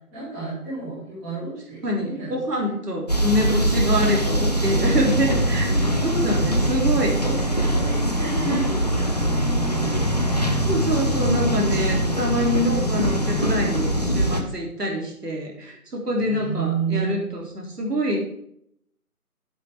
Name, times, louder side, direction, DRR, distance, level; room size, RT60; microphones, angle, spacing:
voice 1, 0.1-2.7 3.0-3.1 4.9-5.1 7.2-10.7 15.6-15.7 16.2-17.4, right 4 dB, 5° right, -10 dB, 1.7 m, -32 dB
voice 2, 1.8-5.8 6.0-7.2 10.7-18.2, equal, 85° right, 0 dB, 3.5 m, -25 dB
sound 1, 3.1-14.4, equal, 25° left, 0.7 m, -22 dB
8.7 x 8.3 x 4.9 m, 0.72 s
figure-of-eight pair, 170°, 46 cm